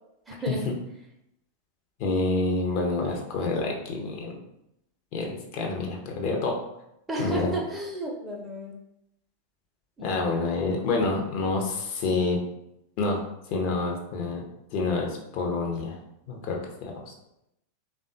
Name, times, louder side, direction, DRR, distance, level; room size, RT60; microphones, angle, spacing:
voice 1, 0.3-0.6 7.1-8.7 10.0-10.3, right 1 dB, 15° right, -1 dB, 0.6 m, -32 dB
voice 2, 2.0-4.4 5.1-6.5 7.2-7.6 10.0-12.4 13.0-14.4 14.7-16.0 16.3-17.1, left 3 dB, 45° left, 1 dB, 0.6 m, -28 dB
3.4 x 2.2 x 2.6 m, 0.80 s
figure-of-eight pair, 90°, 0 cm